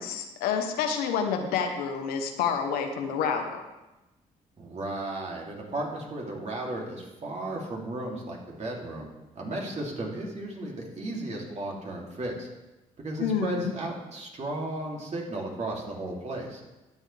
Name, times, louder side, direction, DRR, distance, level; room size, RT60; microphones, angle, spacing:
voice 1, 0.0-3.6 13.2-13.7, left 6 dB, 90° left, 5 dB, 0.9 m, -28 dB
voice 2, 4.6-9.1 9.3-12.5 13.0-16.6, right 1 dB, 45° right, -2 dB, 2.8 m, -34 dB
12.5 x 7.5 x 3.3 m, 1.0 s
supercardioid pair, 60°, 15 cm